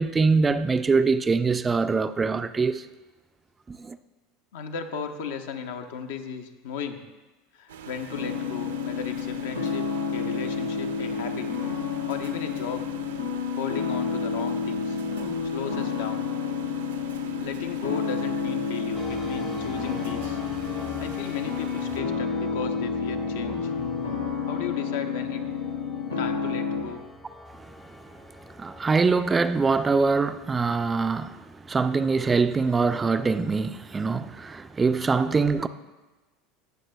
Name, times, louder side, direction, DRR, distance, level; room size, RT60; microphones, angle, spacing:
voice 1, 0.0-2.9 3.7-4.0 27.9-28.0 28.6-35.7, right 4 dB, 20° right, 0.4 m, -23 dB
voice 2, 4.5-7.0 7.5-11.5 12.1-12.9 13.6-15.0 15.4-16.3 17.4-20.4 21.0-23.7 24.5-25.4 26.2-27.0, left 6 dB, 65° left, 0.7 m, -36 dB
sound 1, 7.7-22.0, right 7 dB, 75° right, 0.6 m, -43 dB
sound 2, 8.1-26.8, left 5 dB, 85° left, 1.1 m, -30 dB
sound 3, 18.9-30.1, left 2 dB, 20° left, 0.6 m, -44 dB
17.5 x 6.6 x 2.2 m
figure-of-eight pair, 75°, 0 cm